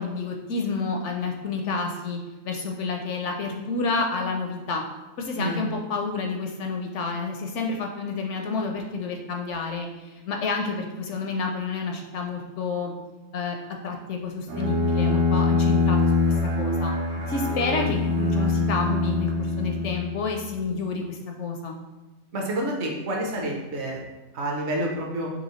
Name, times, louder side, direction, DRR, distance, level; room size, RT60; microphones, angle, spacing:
voice 1, 0.0-4.8 5.2-12.9 13.3-13.6 13.8-16.9 17.3-21.7, left 4 dB, 65° left, 2 dB, 0.8 m, -29 dB
Bowed string instrument, 14.5-20.3, left 3 dB, 80° right, 1.7 m, -24 dB
voice 2, 22.3-24.0 24.3-25.3, right 1 dB, 55° right, 0 dB, 1.0 m, -28 dB
5.5 x 2.9 x 3.0 m, 1.1 s
omnidirectional pair, 1.5 m